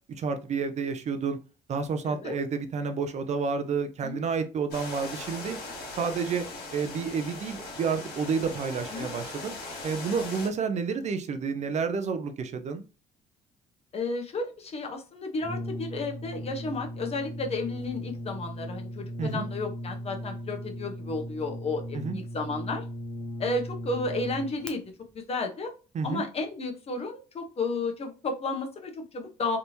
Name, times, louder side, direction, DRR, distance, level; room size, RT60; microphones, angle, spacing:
voice 1, 0.1-1.4 1.7-5.6 6.0-6.5 6.7-9.6 9.8-12.8 19.2-19.5 21.9-22.2 25.9-26.3, right 5 dB, 45° right, 8 dB, 0.5 m, -30 dB
sound 1, 4.7-10.5, left 2 dB, 75° left, 1.6 m, -39 dB
voice 2, 13.9-22.8 23.4-24.8 25.1-25.7 26.0-29.6, left 3 dB, 35° left, 3 dB, 0.9 m, -32 dB
Brass instrument, 15.4-24.7, equal, 5° left, 0.5 m, -37 dB
3.4 x 2.8 x 2.7 m, 0.33 s
cardioid pair, 110°, 17 cm